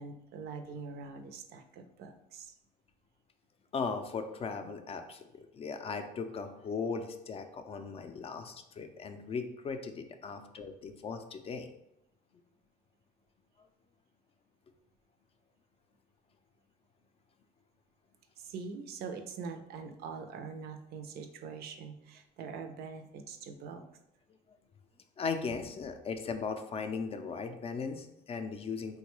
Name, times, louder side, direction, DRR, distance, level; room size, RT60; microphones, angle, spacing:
voice 1, 0.0-2.5 18.4-23.8, right 5 dB, 70° right, 7 dB, 0.4 m, -43 dB
voice 2, 3.7-11.7 25.2-29.0, left 5 dB, 35° left, 7 dB, 0.4 m, -38 dB
3.7 x 2.2 x 3.0 m, 0.82 s
cardioid pair, 110°, 17 cm